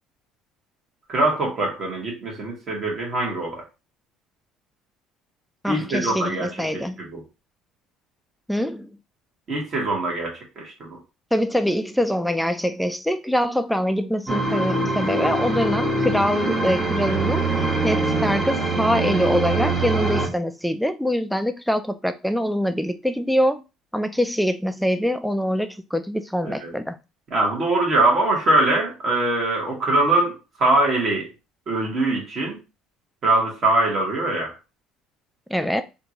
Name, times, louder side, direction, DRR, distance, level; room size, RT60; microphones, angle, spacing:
voice 1, 1.1-3.6 5.6-6.8 7.1-7.2 9.5-11.0 26.4-26.7 27.3-30.3 30.6-31.3 31.7-32.6 33.2-34.5, right 2 dB, 40° right, 1.6 m, -22 dB
voice 2, 5.6-7.1 8.5-9.0 11.3-23.6 23.9-27.0 35.5-35.8, equal, ahead, 0.3 m, -24 dB
sound 1, 14.3-20.3, right 2 dB, 20° right, 1.0 m, -23 dB
3.5 x 2.6 x 2.9 m
cardioid pair, 135°, 0 cm